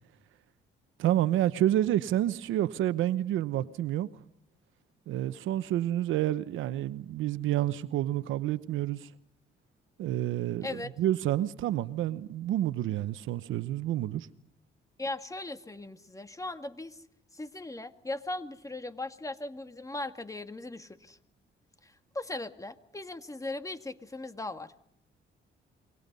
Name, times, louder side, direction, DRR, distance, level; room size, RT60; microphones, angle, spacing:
voice 1, 1.0-4.1 5.1-9.1 10.0-14.3, right 13 dB, 85° right, 1.0 m, -29 dB
voice 2, 10.6-10.9 15.0-17.0 17.3-21.2 21.8-24.7, left 2 dB, 15° left, 2.1 m, -38 dB
28.0 x 23.5 x 5.5 m
cardioid pair, 90°, 20 cm